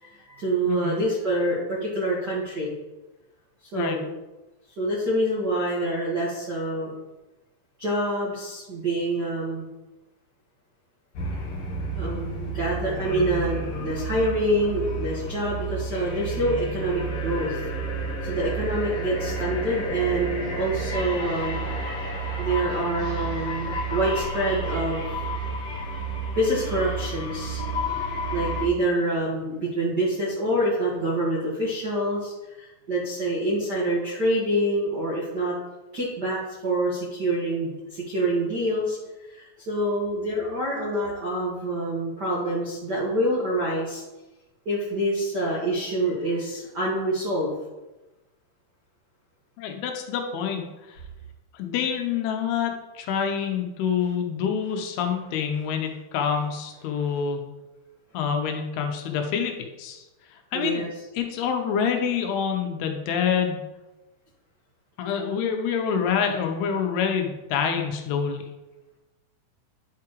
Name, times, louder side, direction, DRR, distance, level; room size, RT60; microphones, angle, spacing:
voice 1, 0.0-2.7 3.7-4.1 4.8-6.9 7.8-9.7 11.9-17.6 18.2-21.6 22.4-25.2 26.3-27.6 28.3-35.5 35.9-39.0 39.3-44.0 44.6-47.5 60.5-60.9, right 1 dB, 70° right, -6 dB, 0.9 m, -26 dB
voice 2, 0.7-1.0 3.7-4.0 49.6-50.6 50.9-51.0 51.5-57.4 58.1-60.0 60.5-60.8 61.2-63.6 65.0-68.4, left 7 dB, 80° left, 4 dB, 2.7 m, -27 dB
sound 1, 11.1-28.7, right 2 dB, 60° left, 2.0 m, -31 dB
11.0 x 4.8 x 3.0 m, 1.1 s
omnidirectional pair, 4.6 m